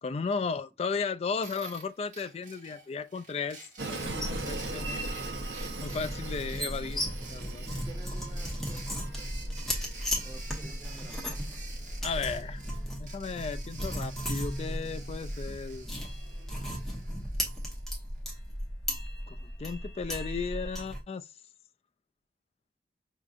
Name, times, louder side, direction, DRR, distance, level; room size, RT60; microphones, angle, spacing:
voice 1, 0.0-3.6 3.9-5.3 5.8-7.0 7.3-7.7 12.0-12.6 12.9-15.9 19.3-21.3, left 5 dB, 35° left, 0.3 m, -35 dB
sound 1, 1.4-18.3, right 4 dB, 45° right, 1.4 m, -50 dB
Train, 3.8-12.8, right 3 dB, 70° right, 0.8 m, -42 dB
sound 2, 4.0-21.0, equal, ahead, 0.9 m, -36 dB
voice 2, 7.8-9.3 10.2-11.5 14.7-15.0, right 2 dB, 20° right, 0.8 m, -51 dB
5.2 x 2.8 x 2.4 m
head